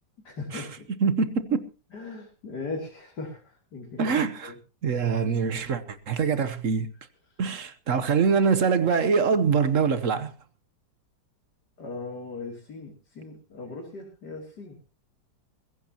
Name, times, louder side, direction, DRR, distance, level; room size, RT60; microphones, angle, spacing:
voice 1, 0.3-0.9 1.9-4.1 4.4-4.5 11.8-14.8, left 3 dB, 65° left, 3.5 m, -38 dB
voice 2, 1.0-1.7 4.0-4.5 4.8-6.9 7.4-10.3, right 5 dB, 50° right, 1.3 m, -24 dB
21.5 x 15.5 x 2.9 m
omnidirectional pair, 1.9 m